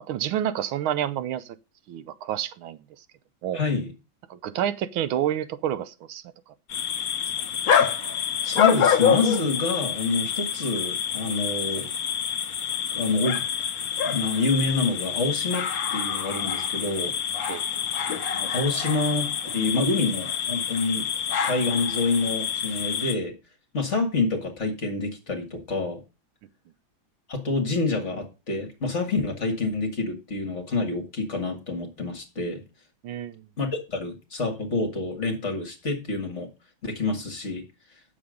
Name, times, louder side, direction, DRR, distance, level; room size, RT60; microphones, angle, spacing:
voice 1, 0.0-1.5 1.9-2.8 3.4-3.6 4.3-6.2 17.5-17.7 33.0-33.4, right 10 dB, 90° right, 1.6 m, -29 dB
voice 2, 3.5-3.9 8.4-11.9 12.9-13.4 14.0-15.7 15.9-17.1 18.3-19.3 19.5-21.1 21.4-23.4 23.7-26.0 27.3-32.6 33.6-36.5 36.8-37.6, left 3 dB, 35° left, 2.1 m, -27 dB
sound 1, 6.7-23.2, left 8 dB, 50° left, 1.4 m, -27 dB
8.8 x 7.2 x 5.1 m
omnidirectional pair, 2.2 m